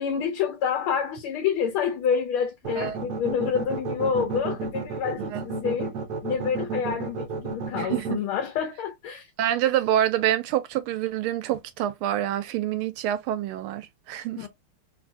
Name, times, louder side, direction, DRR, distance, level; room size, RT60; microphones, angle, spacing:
voice 1, 0.0-5.9 6.2-9.3 14.4-14.5, left 7 dB, 85° left, 1.6 m, -28 dB
sound 1, 2.6-8.1, right 4 dB, 60° right, 1.1 m, -31 dB
voice 2, 7.8-8.2 9.4-14.5, right 11 dB, 85° right, 1.5 m, -26 dB
3.7 x 2.6 x 2.3 m
omnidirectional pair, 2.3 m